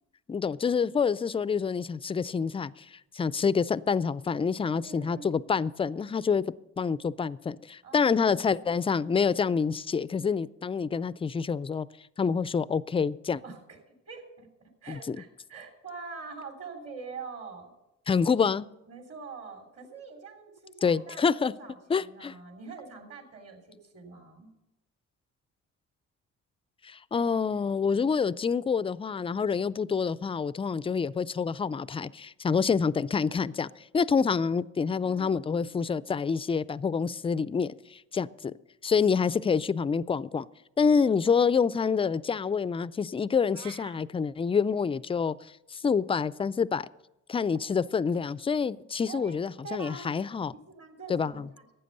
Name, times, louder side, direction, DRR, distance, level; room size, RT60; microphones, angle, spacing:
voice 1, 0.3-6.5 6.8-11.9 12.2-13.4 14.9-15.2 18.1-18.7 20.8-21.5 21.9-22.3 26.8-38.5 38.8-40.5 40.8-45.4 45.7-46.9 47.3-50.5 51.1-51.5, left 6 dB, 20° left, 0.3 m, -27 dB
voice 2, 4.7-5.5 7.8-8.1 13.4-13.8 14.1-14.5 14.8-17.7 18.9-24.5 35.0-35.8 40.8-40.9 47.5-47.7 49.1-50.1 50.5-51.7, right 4 dB, 50° right, 3.2 m, -44 dB
sound 1, 43.5-44.0, right 8 dB, 80° right, 0.9 m, -47 dB
12.5 x 8.6 x 6.6 m
cardioid pair, 90°, 30 cm